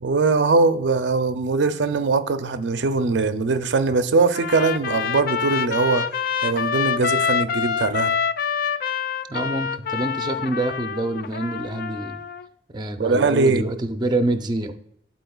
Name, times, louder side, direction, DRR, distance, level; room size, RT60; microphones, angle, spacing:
voice 1, 0.0-6.1 6.4-8.1 13.0-13.8, right 4 dB, 80° right, 0.5 m, -21 dB
Trumpet, 4.3-12.5, left 6 dB, 50° left, 0.3 m, -26 dB
voice 2, 9.3-12.2 12.7-14.7, right 2 dB, 25° right, 0.5 m, -26 dB
11.5 x 4.3 x 2.3 m
head